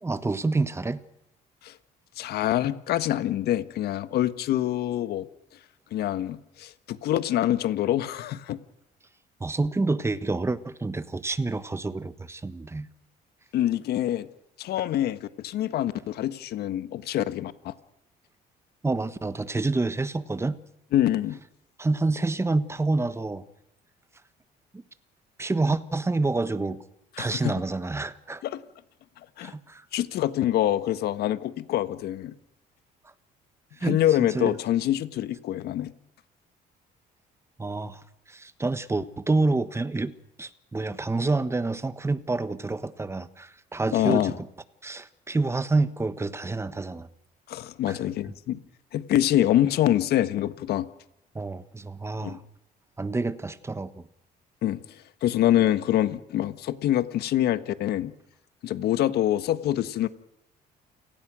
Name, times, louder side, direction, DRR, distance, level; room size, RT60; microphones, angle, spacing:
voice 1, 0.0-1.0 9.4-12.9 18.8-20.6 21.8-23.4 24.7-24.8 25.4-26.8 27.2-28.4 29.4-29.8 33.8-34.0 34.3-34.5 37.6-40.1 40.4-44.5 44.8-47.1 47.9-48.0 51.3-52.4 53.0-54.0, right 3 dB, 15° right, 14 dB, 1.4 m, -28 dB
voice 2, 2.2-5.3 5.9-8.6 13.5-14.3 14.6-17.7 20.9-21.4 27.2-27.5 28.4-28.6 29.4-29.5 29.9-32.3 33.8-35.9 43.9-44.3 47.5-48.6 48.9-50.9 52.2-52.4 54.6-54.8 55.2-58.1 58.6-60.1, left 12 dB, 70° left, 13 dB, 1.5 m, -25 dB
29.0 x 18.0 x 6.3 m, 0.81 s
cardioid pair, 110°, 17 cm